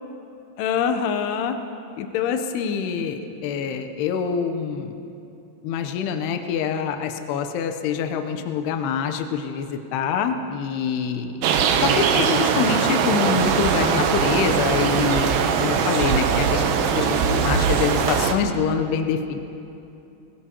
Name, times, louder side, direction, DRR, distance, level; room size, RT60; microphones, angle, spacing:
voice 1, 0.6-1.6 2.0-5.0 5.6-11.4 11.8-16.6 17.0-19.4, left 7 dB, 80° left, 6 dB, 2.7 m, -25 dB
sound 1, 11.4-18.3, right 6 dB, 75° right, 2.2 m, -21 dB
21.0 x 21.0 x 2.9 m, 2.7 s
omnidirectional pair, 4.9 m